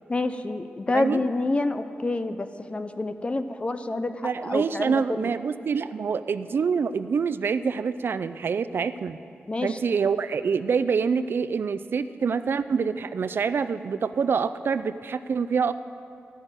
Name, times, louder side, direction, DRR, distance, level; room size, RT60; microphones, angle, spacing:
voice 1, 0.1-5.3 9.5-9.8, left 2 dB, 30° left, 9 dB, 0.6 m, -28 dB
voice 2, 4.2-9.2 9.6-15.7, right 6 dB, 60° right, 13 dB, 0.4 m, -26 dB
13.0 x 6.3 x 8.8 m, 2.6 s
wide cardioid pair, 115°, 4 cm